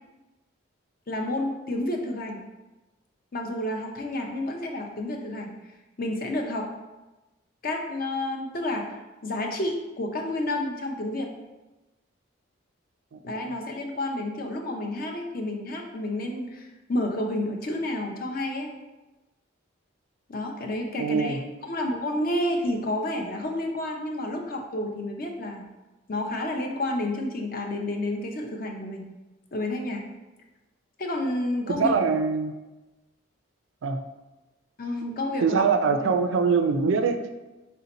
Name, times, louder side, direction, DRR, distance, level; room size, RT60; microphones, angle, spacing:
voice 1, 1.1-2.4 3.3-5.6 6.0-6.7 7.6-8.9 9.2-11.3 13.2-18.7 20.3-25.7 26.1-29.1 29.5-30.0 31.0-31.9 34.8-35.7 36.0-36.1, left 1 dB, 45° left, 2 dB, 0.6 m, -30 dB
voice 2, 21.0-21.4 31.7-32.5 33.8-34.0 35.4-37.3, right 5 dB, 70° right, 7 dB, 0.4 m, -23 dB
4.2 x 2.7 x 4.0 m, 1.1 s
head